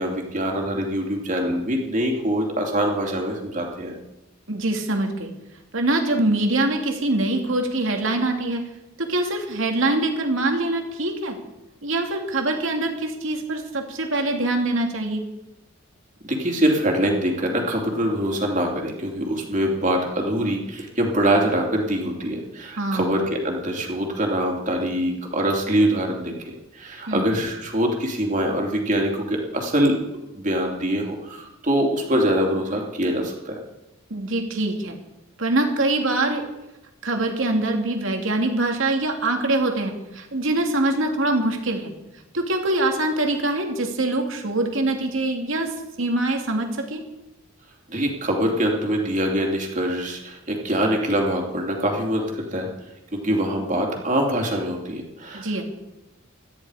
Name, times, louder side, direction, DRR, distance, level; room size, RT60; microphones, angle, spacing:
voice 1, 0.0-3.9 16.2-30.0 30.3-33.5 47.9-52.7 53.1-55.5, equal, 35° right, 0 dB, 3.1 m, -24 dB
voice 2, 4.5-5.3 5.7-8.6 9.0-11.4 11.8-15.2 22.8-23.2 27.1-27.3 34.1-35.0 35.4-36.4 37.0-41.9 42.3-45.7 46.0-47.0 55.3-55.6, right 2 dB, 70° right, 3 dB, 2.6 m, -24 dB
17.5 x 13.5 x 5.0 m, 0.94 s
head